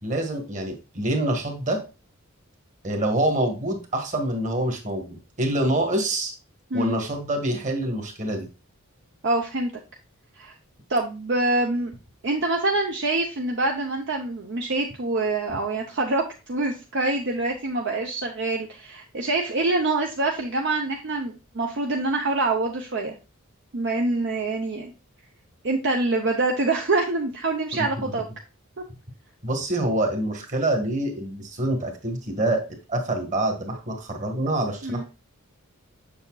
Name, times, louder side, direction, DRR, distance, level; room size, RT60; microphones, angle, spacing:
voice 1, 0.0-1.8 2.8-6.3 6.7-8.5 27.7-27.9 29.4-32.6 32.9-35.0, right 1 dB, 35° right, 4 dB, 1.4 m, -26 dB
voice 2, 9.2-9.7 10.4-10.5 10.9-11.9 12.2-23.1 23.7-24.9 25.6-28.2 34.8-35.0, right 2 dB, 55° right, 1 dB, 0.7 m, -25 dB
6.9 x 6.6 x 2.3 m, 0.29 s
head